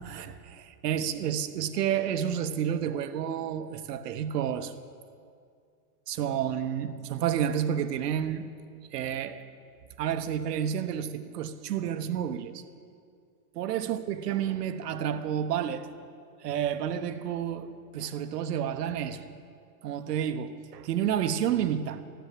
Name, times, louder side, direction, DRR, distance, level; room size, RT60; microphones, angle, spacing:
voice 1, 0.0-4.7 6.1-8.5 8.9-9.4 10.0-12.6 13.5-15.9 16.4-19.2 19.8-22.0, right 9 dB, 90° right, 1.1 m, -30 dB
14.0 x 10.5 x 7.6 m
supercardioid pair, 155°, 46 cm